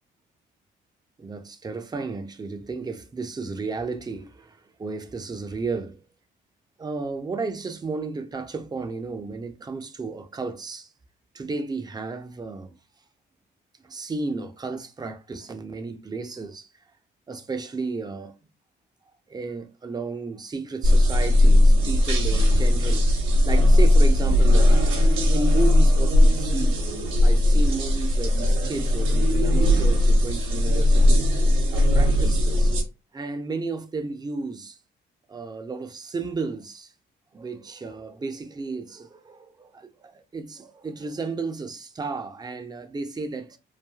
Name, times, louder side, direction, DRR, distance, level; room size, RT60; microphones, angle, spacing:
voice 1, 1.2-6.0 6.8-10.9 11.3-12.7 13.8-16.7 17.3-18.3 19.3-23.1 23.4-24.8 25.3-26.8 27.2-31.3 31.7-32.7 33.1-34.8 35.3-36.9 37.3-43.6, right 4 dB, 20° right, 0.5 m, -33 dB
sound 1, 20.8-32.8, left 1 dB, 85° right, 0.9 m, -18 dB
3.2 x 2.3 x 2.3 m
cardioid pair, 90°, 20 cm